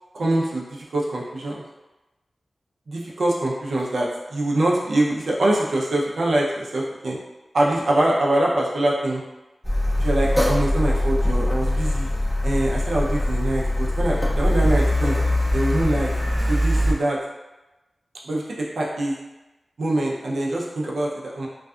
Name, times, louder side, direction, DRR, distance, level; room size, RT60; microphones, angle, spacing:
voice 1, 0.1-1.6 2.9-7.2 7.5-9.2 10.0-12.1 12.4-15.2 15.5-16.1 16.5-17.2 18.2-18.4 18.8-19.1 19.8-21.5, right 1 dB, 70° right, -3 dB, 0.5 m, -24 dB
Car, 9.6-16.9, left 1 dB, 5° left, 0.5 m, -22 dB
2.5 x 2.3 x 2.3 m, 1.0 s
wide cardioid pair, 115°, 0 cm